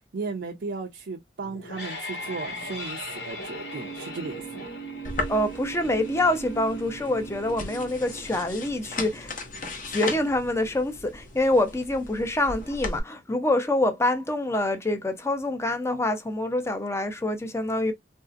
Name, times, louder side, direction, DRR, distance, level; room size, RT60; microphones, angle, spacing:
voice 1, 0.1-4.7, right 4 dB, 70° right, 0.5 m, -35 dB
sound 1, 1.4-12.4, right 1 dB, 70° left, 1.2 m, -39 dB
sound 2, 5.0-13.0, left 2 dB, 50° left, 0.9 m, -37 dB
voice 2, 5.3-9.3 9.9-17.9, left 1 dB, 15° left, 0.5 m, -26 dB
3.1 x 2.7 x 2.4 m
head